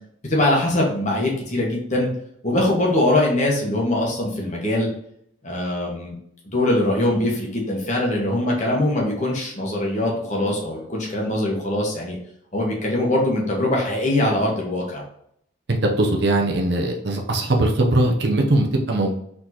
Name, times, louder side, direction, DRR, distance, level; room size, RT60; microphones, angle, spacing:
voice 1, 0.2-2.1 2.4-4.9 5.4-6.1 6.4-12.2 12.5-15.0, left 1 dB, 35° left, -2 dB, 1.4 m, -22 dB
voice 2, 15.7-19.1, right 1 dB, 55° right, 1 dB, 0.8 m, -20 dB
4.3 x 3.8 x 3.0 m, 0.70 s
head